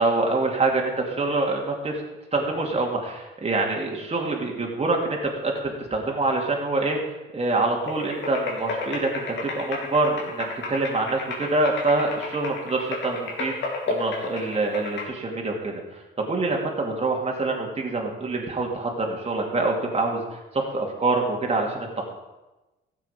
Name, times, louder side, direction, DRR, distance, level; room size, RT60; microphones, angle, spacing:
voice 1, 0.0-2.0 2.3-7.0 7.3-13.5 13.9-22.0, right 2 dB, 30° right, 0 dB, 2.7 m, -25 dB
sound 1, 7.9-15.1, left 3 dB, 70° left, 3.2 m, -33 dB
14.5 x 7.5 x 5.2 m, 1.1 s
cardioid pair, 90°, 20 cm